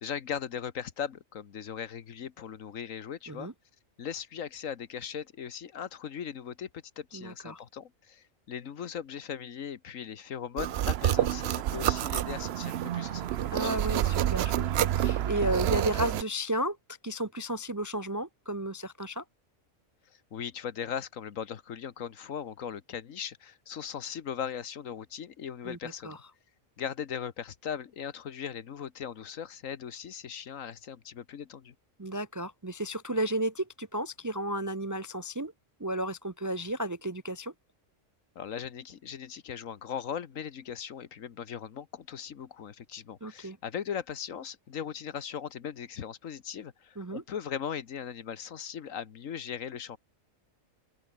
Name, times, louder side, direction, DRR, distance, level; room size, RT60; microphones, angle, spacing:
voice 1, 0.0-3.5 4.0-13.7 20.3-26.2 26.8-31.7 38.3-50.0, left 8 dB, 85° left, 1.6 m, -39 dB
voice 2, 7.1-7.6 13.5-16.8 17.0-19.2 25.6-25.8 26.0-26.2 32.0-35.5 35.8-37.5 43.2-43.6 47.0-47.2, right 1 dB, 30° right, 0.3 m, -33 dB
sound 1, 10.6-16.2, right 12 dB, 65° right, 0.8 m, -28 dB
open air
omnidirectional pair, 1.3 m